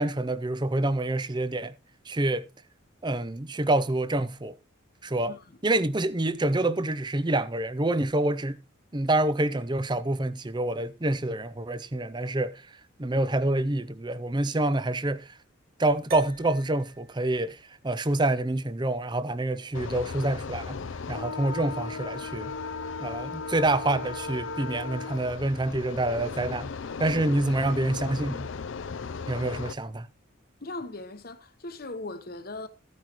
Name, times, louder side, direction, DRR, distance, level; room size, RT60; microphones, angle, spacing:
voice 1, 0.0-1.7 2.1-2.5 3.0-4.6 5.0-5.3 5.6-8.6 8.9-12.6 13.0-15.3 15.8-17.6 17.8-20.8 21.1-22.5 23.0-26.7 27.0-28.5 29.3-30.1, right 2 dB, 20° right, 0.6 m, -27 dB
sound 1, 16.1-20.7, left 3 dB, 45° right, 1.5 m, -46 dB
sound 2, 19.7-29.7, left 5 dB, 65° left, 0.5 m, -36 dB
voice 2, 30.6-32.7, left 2 dB, 45° left, 1.0 m, -39 dB
14.5 x 9.5 x 3.0 m
head